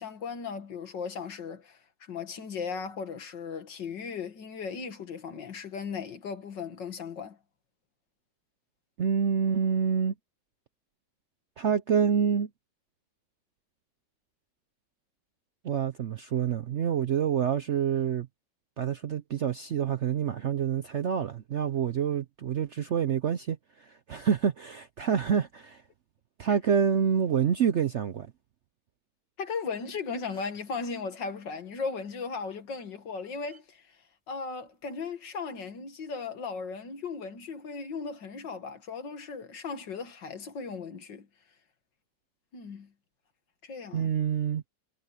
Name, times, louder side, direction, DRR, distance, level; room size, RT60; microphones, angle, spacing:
voice 1, 0.0-7.4 26.5-26.6 29.4-33.8 34.3-41.3 42.5-42.9 43.6-44.1, left 5 dB, 80° left, 2.5 m, -37 dB
voice 2, 9.0-10.1 11.6-12.5 15.6-18.3 18.8-25.8 26.4-28.3 43.9-44.6, right 7 dB, 60° right, 0.7 m, -27 dB
sound 1, 29.7-29.8 30.1-30.7 32.4-32.6 33.5-33.6 34.7-34.9, right 1 dB, 20° right, 7.1 m, -60 dB
omnidirectional pair, 1.9 m